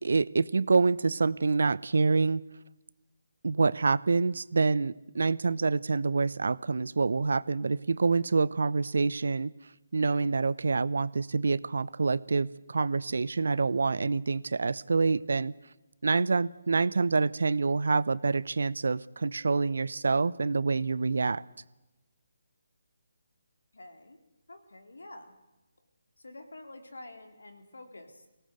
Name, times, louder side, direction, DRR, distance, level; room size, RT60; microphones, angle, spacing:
voice 1, 0.0-2.4 3.4-9.5 9.9-15.5 16.0-21.4, right 4 dB, 65° right, 20 dB, 0.8 m, -27 dB
voice 2, 23.7-24.2 24.5-25.3 26.2-28.3, left 2 dB, 75° left, 6 dB, 4.0 m, -48 dB
23.0 x 18.5 x 8.0 m, 1.0 s
figure-of-eight pair, 145°, 0 cm